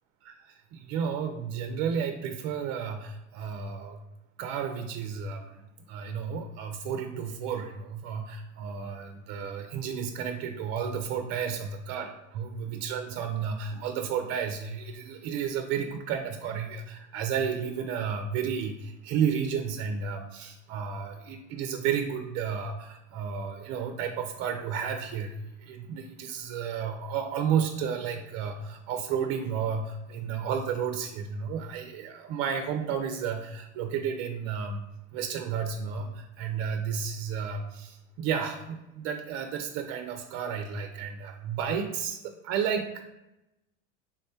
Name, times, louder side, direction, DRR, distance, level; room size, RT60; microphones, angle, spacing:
voice 1, 0.3-4.0 4.4-34.9 35.1-43.0, right 7 dB, 45° right, 6 dB, 0.4 m, -32 dB
3.5 x 2.1 x 4.2 m, 0.92 s
hypercardioid pair, 95°, 38 cm